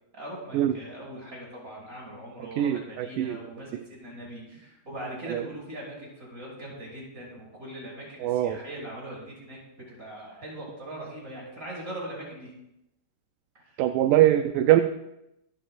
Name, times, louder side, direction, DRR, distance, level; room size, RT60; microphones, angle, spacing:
voice 1, 0.1-12.5 13.6-13.7, right 1 dB, 20° right, -4 dB, 7.0 m, -41 dB
voice 2, 2.6-3.4 3.7-3.8 5.3-5.4 8.2-8.6 13.8-14.8, right 13 dB, 80° right, 8 dB, 2.0 m, -22 dB
26.0 x 12.5 x 2.6 m, 0.86 s
omnidirectional pair, 4.0 m